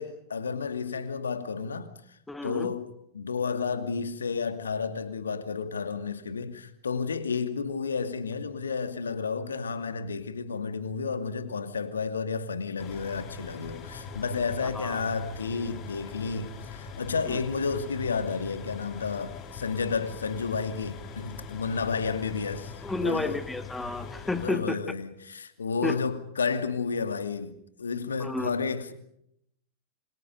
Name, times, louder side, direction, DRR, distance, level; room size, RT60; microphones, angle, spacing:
voice 1, 0.0-22.7 23.0-23.4 24.4-27.5 27.8-28.9, left 5 dB, 70° left, 2.4 m, -31 dB
voice 2, 2.3-2.7 14.7-15.0 17.3-17.4 22.8-24.8 25.8-26.0 28.2-28.5, left 2 dB, 5° left, 2.1 m, -31 dB
sound 1, 12.8-24.5, left 5 dB, 35° left, 3.5 m, -42 dB
28.0 x 26.5 x 5.3 m
figure-of-eight pair, 90°, 0 cm